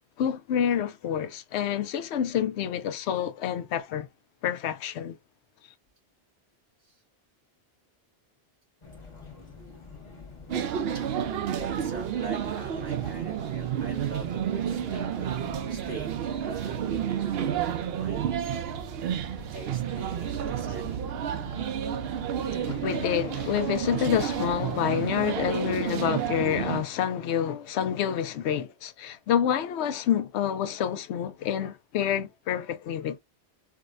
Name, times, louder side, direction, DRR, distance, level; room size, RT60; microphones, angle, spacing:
voice 1, 0.2-4.1 4.4-5.2 22.5-33.2, left 9 dB, 80° left, 0.8 m, -28 dB
sound 1, 8.8-24.8, left 3 dB, 30° left, 0.9 m, -47 dB
sound 2, 10.5-26.8, right 9 dB, 70° right, 0.8 m, -30 dB
voice 2, 11.5-15.3 15.7-18.3 19.5-21.0, right 4 dB, 90° right, 2.6 m, -44 dB
4.7 x 2.2 x 2.4 m
omnidirectional pair, 1.1 m